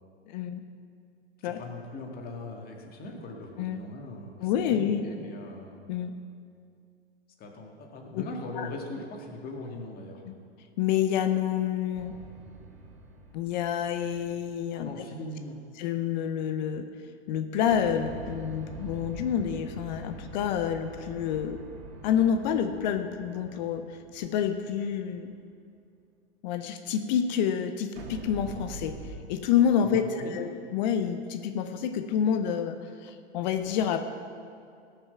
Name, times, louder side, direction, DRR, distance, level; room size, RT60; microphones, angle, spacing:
voice 1, 0.3-0.6 1.4-1.6 3.6-3.8 4.4-5.0 5.9-6.1 8.1-8.2 8.6-8.7 10.3-10.4 10.8-12.1 13.3-15.1 15.8-16.9 17.3-21.6 22.0-25.3 26.4-34.0, left 8 dB, 40° left, 9 dB, 0.7 m, -28 dB
voice 2, 1.4-5.8 7.4-10.2 14.8-15.6 30.0-30.5, left 2 dB, 25° left, 1 dB, 2.0 m, -40 dB
sound 1, 11.9-14.5 17.7-24.9 28.0-29.2, right 2 dB, 70° right, 2.2 m, -44 dB
17.0 x 6.9 x 5.7 m, 2.3 s
figure-of-eight pair, 105°, 34 cm